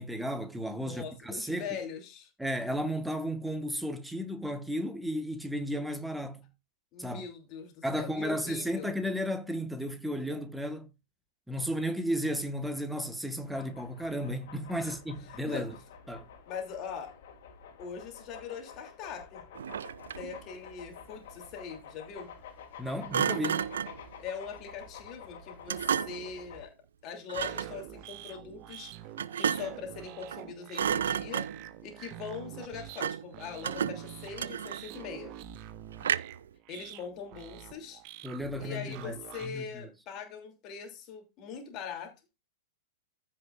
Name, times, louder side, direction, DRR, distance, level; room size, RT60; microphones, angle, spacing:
voice 1, 0.0-1.7 2.4-6.4 7.0-7.2 7.8-10.9 11.5-15.7 16.1-16.3 22.8-23.6 38.2-39.8, equal, 5° right, 1.4 m, -34 dB
voice 2, 0.7-2.3 6.9-8.9 14.8-15.0 15.3-15.7 16.5-17.1 17.8-19.5 20.1-22.3 24.2-26.7 27.0-28.9 29.4-31.5 31.8-35.3 36.7-38.0 38.6-42.1, left 6 dB, 35° left, 2.9 m, -41 dB
sound 1, 13.4-26.7, left 7 dB, 50° left, 2.8 m, -49 dB
Thump thud, 19.5-20.4 23.1-24.0 25.7-26.3 27.3-27.8 29.2-29.8 30.2-30.5 30.7-31.7 33.0-33.3 33.6-35.0 36.0-36.5, right 8 dB, 65° right, 0.4 m, -32 dB
sound 2, 27.3-39.5, right 12 dB, 40° right, 0.9 m, -47 dB
15.0 x 5.8 x 2.5 m
figure-of-eight pair, 105°, 0 cm